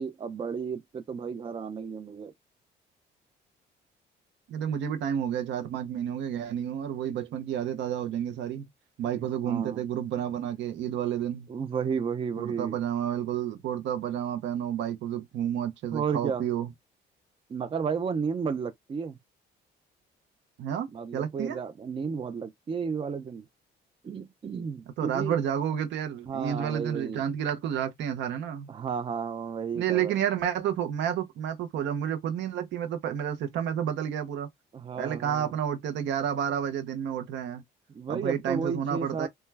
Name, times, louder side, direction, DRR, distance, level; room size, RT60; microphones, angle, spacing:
voice 1, 0.0-2.3 9.2-9.8 11.5-12.8 15.9-16.4 17.5-19.2 20.9-23.4 24.0-25.4 26.3-27.2 28.7-30.1 34.7-35.5 37.9-39.3, right 6 dB, 30° right, 0.4 m, -32 dB
voice 2, 4.5-8.7 9.0-11.5 12.4-16.7 20.6-21.6 25.0-28.7 29.8-34.5 35.0-37.6 38.1-39.3, right 9 dB, 75° right, 0.7 m, -30 dB
2.2 x 2.2 x 3.2 m
cardioid pair, 85°, 19 cm